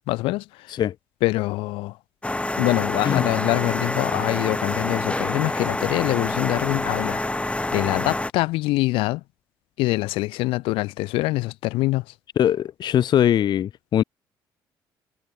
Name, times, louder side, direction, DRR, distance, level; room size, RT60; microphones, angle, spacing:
voice 1, 0.1-0.7 1.2-2.0 2.6-7.2 7.7-9.2 9.8-12.0, left 20 dB, 85° left, 1.3 m, -24 dB
sound 1, 2.2-8.3, left 2 dB, 15° left, 2.5 m, -27 dB
voice 2, 12.4-14.0, left 10 dB, 55° left, 0.4 m, -21 dB
supercardioid pair, 65°, 9 cm